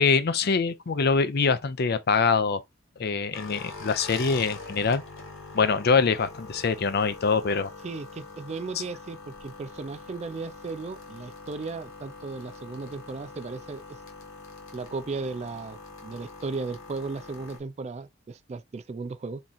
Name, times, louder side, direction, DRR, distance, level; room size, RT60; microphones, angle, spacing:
voice 1, 0.0-2.6 3.0-5.0 5.5-7.7, left 5 dB, 55° left, 0.5 m, -24 dB
sound 1, 3.3-17.6, left 3 dB, 90° left, 1.3 m, -44 dB
voice 2, 7.8-14.0 14.7-19.4, right 4 dB, 35° right, 0.3 m, -36 dB
3.6 x 3.0 x 4.0 m
head